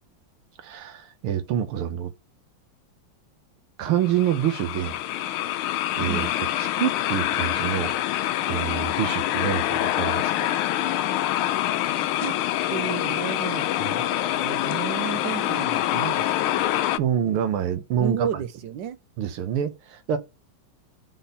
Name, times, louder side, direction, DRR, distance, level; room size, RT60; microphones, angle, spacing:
voice 1, 0.6-2.1 3.8-5.0 5.9-6.3 6.6-8.0 8.4-10.5 13.8-14.1 17.0-18.3 19.2-20.2, right 9 dB, 85° right, 1.9 m, -27 dB
sound 1, 3.9-17.0, left 13 dB, 85° left, 1.5 m, -26 dB
voice 2, 11.9-12.4 12.7-13.7 14.4-16.8 18.0-19.0, right 9 dB, 70° right, 1.3 m, -33 dB
7.5 x 4.3 x 6.8 m
omnidirectional pair, 2.3 m